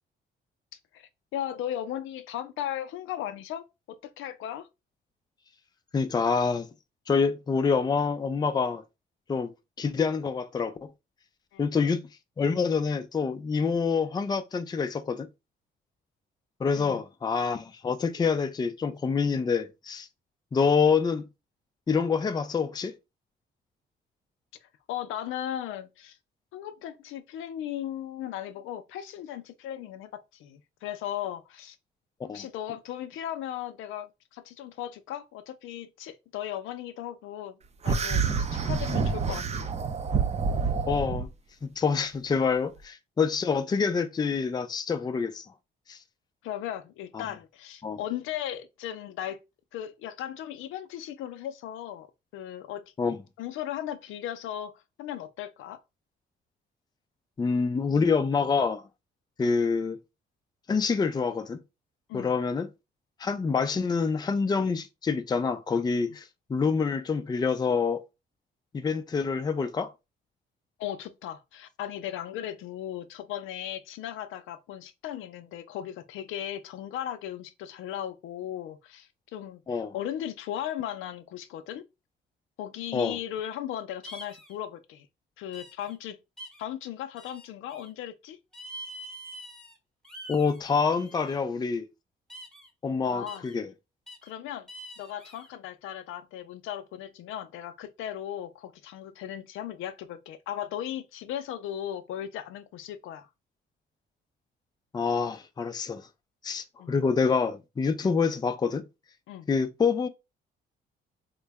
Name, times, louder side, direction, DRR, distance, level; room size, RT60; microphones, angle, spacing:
voice 1, 0.9-4.7 11.5-11.7 16.8-17.0 24.6-26.2 26.5-31.8 32.2-37.6 37.8-39.7 46.4-49.4 49.7-52.1 52.3-52.9 53.4-55.8 62.1-62.3 70.8-81.8 82.6-85.1 85.4-86.2 86.6-88.4 93.1-93.5 94.2-94.7 95.0-103.3 106.8-106.9 109.3-109.5, left 11 dB, 90° left, 0.5 m, -37 dB
voice 2, 5.9-6.7 7.1-8.8 9.3-9.5 9.8-10.9 11.6-12.0 12.4-15.3 16.6-20.1 20.5-21.2 21.9-22.9 32.3-32.5 40.9-41.3 41.6-45.4 45.9-46.0 47.1-47.2 47.8-48.0 53.0-53.2 57.4-58.8 59.4-60.0 60.7-61.6 62.1-62.7 63.2-68.0 68.7-69.9 79.7-79.9 82.9-83.2 90.3-91.9 92.8-93.7 104.9-106.0 106.4-108.8 109.5-110.1, left 5 dB, 20° left, 0.4 m, -26 dB
sound 1, 37.8-41.3, right 5 dB, 35° right, 0.5 m, -27 dB
sound 2, 84.0-84.6 85.5-86.0 86.4-86.6 87.2-87.9 88.5-89.8 90.0-91.4 92.3-92.7 93.3-93.5 94.1-94.3 94.7-95.5, equal, 5° left, 0.9 m, -45 dB
3.8 x 2.1 x 3.4 m
cardioid pair, 90°, 20 cm